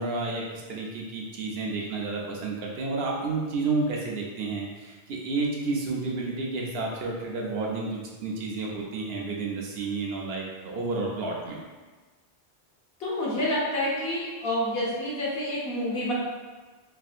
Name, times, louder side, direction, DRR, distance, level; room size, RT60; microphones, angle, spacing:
voice 1, 0.0-11.6, right 3 dB, 70° right, -2 dB, 0.8 m, -31 dB
voice 2, 13.0-16.1, left 1 dB, 65° left, -6 dB, 1.1 m, -28 dB
3.2 x 2.6 x 2.4 m, 1.3 s
omnidirectional pair, 1.1 m